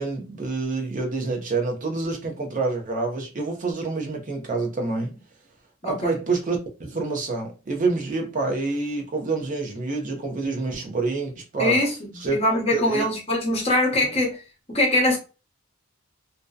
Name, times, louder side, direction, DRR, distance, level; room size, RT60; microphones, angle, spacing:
voice 1, 0.0-5.1 5.8-11.8 12.2-12.4 12.7-13.0 14.0-14.1, right 3 dB, 40° right, 0.6 m, -27 dB
voice 2, 5.8-6.1 11.6-14.4 14.7-15.2, left 1 dB, 30° left, 0.9 m, -22 dB
2.6 x 2.1 x 2.2 m
head